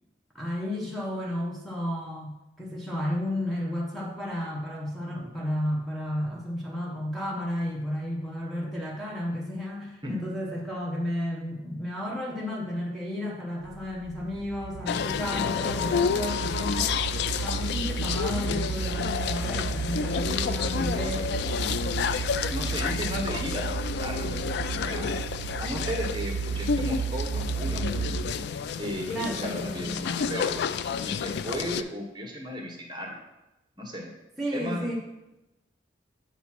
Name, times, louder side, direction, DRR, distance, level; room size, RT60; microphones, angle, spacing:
voice 1, 0.3-17.0 17.4-21.3 29.1-30.0 34.4-34.9, left 1 dB, ahead, -4 dB, 0.9 m, -32 dB
sound 1, 13.6-28.5, right 6 dB, 75° right, 0.3 m, -33 dB
sound 2, 14.9-31.8, left 6 dB, 60° left, 0.3 m, -30 dB
voice 2, 22.5-23.7 24.0-25.1 25.6-28.2 28.8-30.6 31.1-33.2 33.8-34.1 34.5-34.9, equal, 25° right, 1 dB, 1.1 m, -35 dB
8.3 x 3.0 x 5.8 m, 0.96 s
head